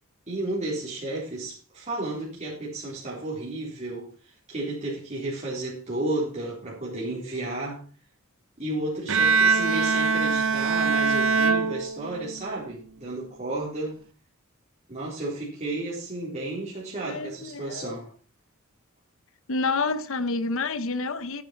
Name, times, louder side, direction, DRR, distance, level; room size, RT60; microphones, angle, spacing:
voice 1, 0.3-7.8 8.6-14.0 14.9-18.1, right 2 dB, 35° right, 3.8 m, -32 dB
Bowed string instrument, 9.1-12.4, right 4 dB, 70° right, 0.8 m, -23 dB
voice 2, 17.0-17.9 19.5-21.4, left 3 dB, 65° left, 0.9 m, -28 dB
13.5 x 9.5 x 4.5 m
head